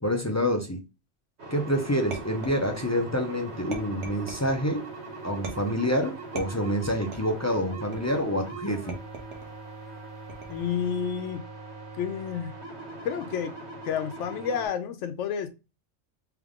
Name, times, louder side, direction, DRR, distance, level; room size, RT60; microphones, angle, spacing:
voice 1, 0.0-0.8 1.5-4.9 5.2-9.0, equal, 25° left, 0.4 m, -27 dB
sound 1, 1.4-14.7, right 3 dB, 65° right, 1.7 m, -41 dB
sound 2, 2.1-3.0 3.7-4.6 5.4-5.9 6.4-7.4 7.9-8.3 8.9-9.5 10.3-10.8, right 3 dB, 80° right, 1.2 m, -40 dB
voice 2, 10.5-11.4 12.0-12.5 13.0-13.5 13.8-15.5, left 8 dB, 85° left, 0.9 m, -30 dB
3.6 x 3.3 x 3.6 m
omnidirectional pair, 1.2 m